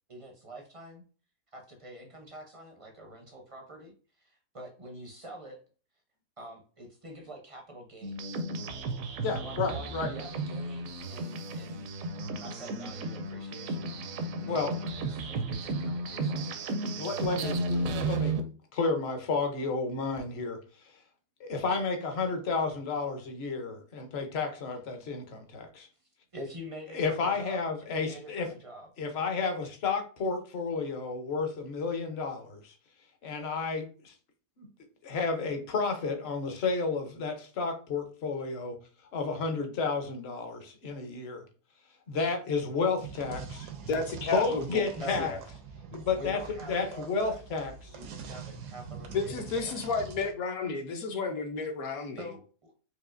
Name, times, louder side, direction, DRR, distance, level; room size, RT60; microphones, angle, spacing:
voice 1, 0.1-1.0 1.5-5.6 6.4-8.5 9.3-11.9 12.4-16.5 26.3-27.6 27.9-28.9 44.9-45.2 46.2-47.4 47.9-49.8 52.2-52.7, right 1 dB, 40° right, 0.4 m, -46 dB
sound 1, 8.0-18.4, right 2 dB, 70° right, 0.9 m, -34 dB
voice 2, 9.2-10.1 14.5-14.7 17.0-18.3 18.7-20.6 21.4-25.9 26.9-28.5 29.0-32.7 33.2-34.1 34.6-34.7 35.0-38.8 39.1-41.4 42.1-43.7 44.3-45.4 45.9-46.4 46.6-48.0, left 4 dB, 50° left, 0.8 m, -31 dB
sound 2, 43.0-50.3, right 6 dB, 85° right, 1.3 m, -44 dB
voice 3, 43.9-44.9 45.2-45.4 49.1-52.3, left 4 dB, 65° left, 1.2 m, -32 dB
4.8 x 2.8 x 2.5 m
omnidirectional pair, 1.7 m